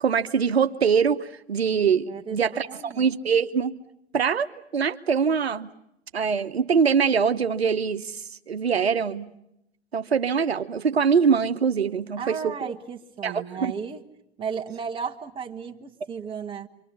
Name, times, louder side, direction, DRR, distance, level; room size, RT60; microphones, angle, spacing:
voice 1, 0.0-3.7 4.1-4.5 4.7-5.7 6.1-9.3 9.9-12.6 13.2-13.7, right 6 dB, 75° right, 8 dB, 1.1 m, -23 dB
voice 2, 2.1-2.4 2.7-3.1 12.2-14.0 14.4-16.7, right 6 dB, 15° right, 4 dB, 1.6 m, -34 dB
29.0 x 25.0 x 7.1 m, 0.82 s
figure-of-eight pair, 105°, 32 cm